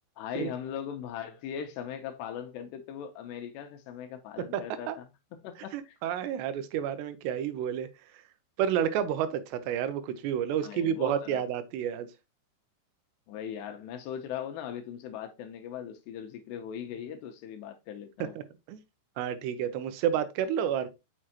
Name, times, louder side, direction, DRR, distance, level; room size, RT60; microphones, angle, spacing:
voice 1, 0.2-5.0 5.4-6.0 10.6-11.4 13.3-18.4, left 9 dB, 75° left, 2.7 m, -39 dB
voice 2, 5.7-7.9 8.6-12.1 18.2-18.4 18.7-18.8 19.2-20.9, right 9 dB, 80° right, 2.7 m, -30 dB
6.6 x 6.2 x 2.9 m
omnidirectional pair, 5.4 m